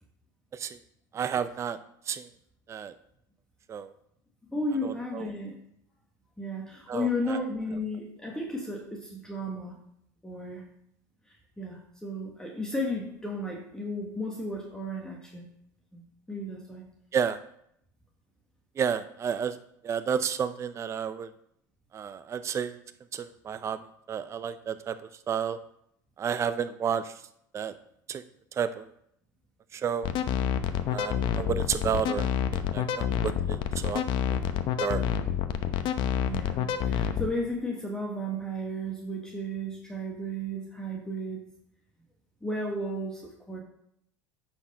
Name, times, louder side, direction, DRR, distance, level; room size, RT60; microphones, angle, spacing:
voice 1, 1.1-1.8 2.1-2.2 2.7-2.9 3.7-3.9 4.8-5.3 6.9-7.1 17.1-17.4 18.8-19.5 19.8-21.3 21.9-22.8 23.1-23.8 24.1-24.9 25.3-25.6 26.2-27.0 27.5-27.7 28.1-28.2 28.6-28.9 29.8-30.1 30.9-32.3 32.7-33.6 33.8-34.0 34.8-35.0, right 7 dB, 30° right, 12 dB, 0.5 m, -30 dB
voice 2, 4.5-5.6 6.4-9.8 10.2-10.7 11.3-15.5 15.9-16.0 16.3-16.8 36.3-41.5 42.4-43.6, equal, 5° left, -1 dB, 1.5 m, -34 dB
sound 1, 30.0-37.3, left 9 dB, 50° left, 0.8 m, -28 dB
9.8 x 4.4 x 5.5 m, 0.73 s
hypercardioid pair, 85°, 10 cm